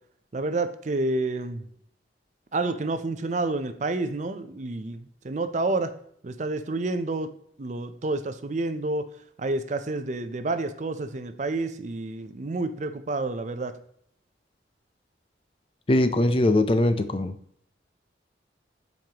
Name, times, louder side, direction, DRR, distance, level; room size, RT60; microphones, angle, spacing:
voice 1, 0.3-1.7 2.5-5.9 6.2-7.3 7.6-13.8, right 2 dB, 40° right, 10 dB, 0.5 m, -29 dB
voice 2, 15.9-17.3, left 1 dB, 30° left, 10 dB, 0.4 m, -21 dB
7.6 x 5.3 x 2.9 m, 0.68 s
head